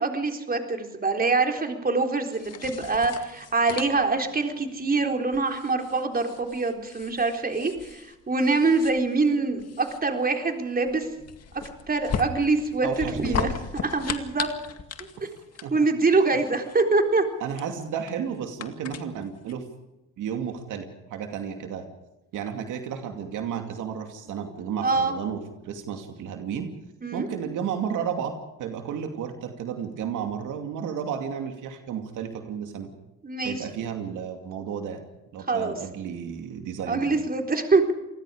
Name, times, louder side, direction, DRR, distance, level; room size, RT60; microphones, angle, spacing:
voice 1, 0.0-11.1 11.9-13.5 13.8-14.5 15.2-15.3 15.7-17.2 24.8-25.2 27.0-27.3 33.2-33.6 35.5-35.7 36.9-37.9, right 3 dB, 30° right, 4 dB, 4.0 m, -24 dB
sound 1, 2.3-19.5, left 7 dB, 55° left, 2.1 m, -38 dB
voice 2, 12.8-13.5 15.6-15.9 17.4-19.6 20.2-21.9 22.3-26.7 27.1-32.9 33.4-35.0 35.3-37.1, right 7 dB, 85° right, 5 dB, 2.6 m, -32 dB
28.0 x 20.0 x 5.0 m, 0.95 s
cardioid pair, 90°, 30 cm